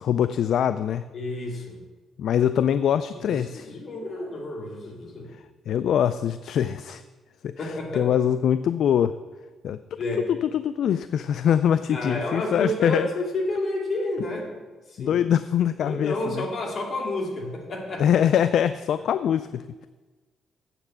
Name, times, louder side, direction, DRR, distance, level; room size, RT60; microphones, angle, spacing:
voice 1, 0.0-1.0 2.2-3.7 5.7-7.0 7.4-9.2 9.6-13.1 15.0-16.5 18.0-19.9, left 9 dB, 70° left, 13 dB, 0.3 m, -23 dB
voice 2, 1.1-1.8 3.2-5.3 7.6-8.1 10.0-10.2 11.9-14.5 14.9-15.2 15.8-18.1, left 1 dB, 50° left, 1 dB, 2.3 m, -30 dB
7.8 x 6.8 x 7.2 m, 1.3 s
cardioid pair, 90°, 0 cm